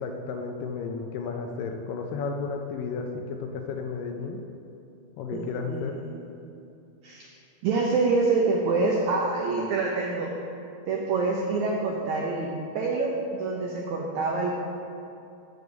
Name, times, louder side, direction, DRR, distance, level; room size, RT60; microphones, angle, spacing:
voice 1, 0.0-4.4 5.2-6.0, left 4 dB, 80° left, 3 dB, 2.1 m, -33 dB
voice 2, 5.3-6.3 7.0-7.3 7.6-10.3 10.9-14.6, right 3 dB, 85° right, -1 dB, 1.6 m, -26 dB
7.8 x 6.8 x 5.2 m, 2.8 s
omnidirectional pair, 4.2 m